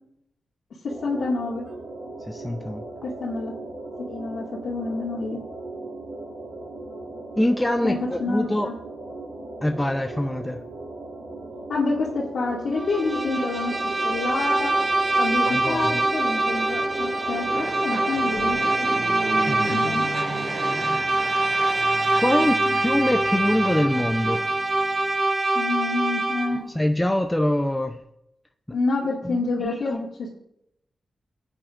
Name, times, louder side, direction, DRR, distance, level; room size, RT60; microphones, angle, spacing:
voice 1, 0.8-1.6 3.0-3.5 4.1-5.4 7.8-8.8 11.7-13.7 14.0-14.7 15.2-19.0 19.7-20.1 22.7-22.8 25.5-26.6 28.7-30.3, left 3 dB, 80° left, -7 dB, 2.1 m, -28 dB
sound 1, 0.9-18.3, right 2 dB, 70° right, 3.9 m, -38 dB
voice 2, 2.3-2.8 7.4-8.7 9.6-10.6 15.5-16.1 19.5-19.9 20.7-21.0 21.6-21.9 22.2-22.6 22.8-24.4 26.7-28.0 29.2-30.0, left 1 dB, 10° left, 5 dB, 0.4 m, -24 dB
Bowed string instrument, 12.8-26.7, right 2 dB, 30° right, 0.9 m, -24 dB
Fixed-wing aircraft airplane, 14.0-25.1, right 2 dB, 50° right, 2.4 m, -36 dB
19.5 x 8.8 x 2.5 m, 0.82 s
wide cardioid pair, 165°, 0 cm